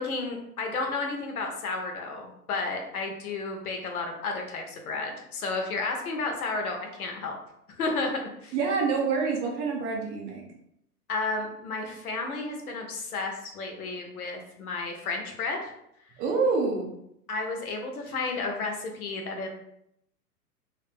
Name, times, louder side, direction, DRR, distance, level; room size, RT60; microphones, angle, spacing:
voice 1, 0.0-7.3 7.7-8.5 11.1-15.7 17.3-19.5, left 3 dB, 65° left, 2 dB, 0.9 m, -32 dB
voice 2, 8.5-10.4 16.2-16.9, right 4 dB, 20° right, 0 dB, 0.5 m, -26 dB
3.3 x 3.0 x 2.4 m, 0.77 s
figure-of-eight pair, 110°, 47 cm